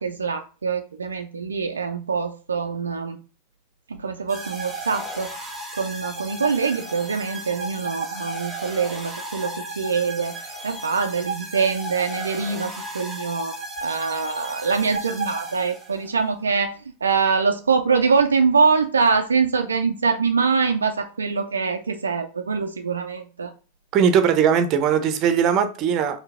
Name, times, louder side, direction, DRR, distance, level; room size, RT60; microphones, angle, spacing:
voice 1, 0.0-3.2 3.9-5.3 5.7-23.5, right 5 dB, 75° right, 0.3 m, -24 dB
sound 1, 4.3-16.1, right 2 dB, 5° right, 1.5 m, -34 dB
voice 2, 23.9-26.2, right 7 dB, 35° right, 0.6 m, -19 dB
4.5 x 2.7 x 3.5 m
figure-of-eight pair, 90°, 0 cm